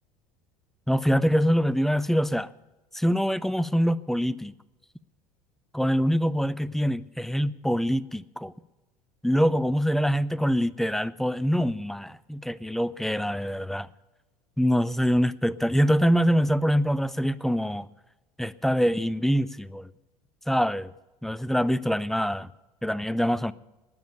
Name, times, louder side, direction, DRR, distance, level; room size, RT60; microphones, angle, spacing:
voice 1, 0.9-2.5 2.9-4.5 5.7-8.5 9.2-13.9 14.6-17.9 18.4-19.9 20.5-20.9 21.2-22.5 22.8-23.5, equal, ahead, 20 dB, 0.4 m, -24 dB
19.5 x 7.1 x 6.7 m, 1.1 s
figure-of-eight pair, 75°, 19 cm